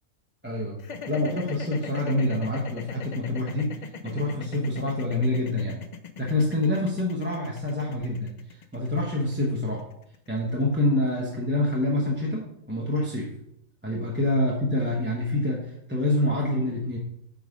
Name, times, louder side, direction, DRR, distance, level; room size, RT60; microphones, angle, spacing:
voice 1, 0.4-0.8 1.1-3.8 4.0-5.8 6.2-9.8 10.3-13.3 13.8-17.0, left 1 dB, 10° right, -3 dB, 0.9 m, -26 dB
sound 1, 0.8-11.0, left 7 dB, 75° left, 0.4 m, -40 dB
8.2 x 3.7 x 5.1 m, 0.75 s
omnidirectional pair, 1.4 m